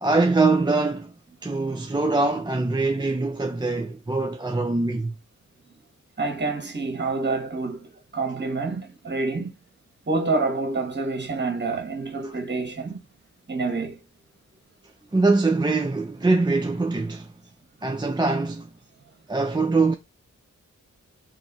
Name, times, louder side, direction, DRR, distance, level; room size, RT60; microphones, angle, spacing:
voice 1, 0.0-1.1 1.4-5.2 12.2-12.3 15.1-17.3 17.8-18.7 19.3-19.9, right 3 dB, 15° right, 0.4 m, -23 dB
voice 2, 6.2-9.5 10.1-13.0 13.5-14.0, right 3 dB, 35° right, 1.2 m, -27 dB
2.9 x 2.7 x 4.0 m
cardioid pair, 50°, 30 cm